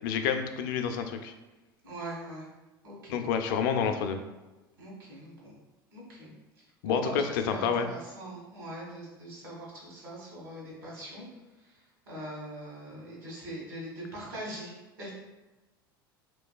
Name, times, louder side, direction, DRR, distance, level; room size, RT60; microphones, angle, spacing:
voice 1, 0.0-1.3 3.1-4.2 6.8-7.9, left 7 dB, 60° left, 7 dB, 0.4 m, -28 dB
voice 2, 1.8-2.5 2.8-3.2 4.8-5.5 5.9-6.3 6.8-7.1 7.5-11.3 12.0-15.1, right 1 dB, 75° right, -5 dB, 1.5 m, -41 dB
3.2 x 3.0 x 2.3 m, 1.1 s
hypercardioid pair, 75°, 12 cm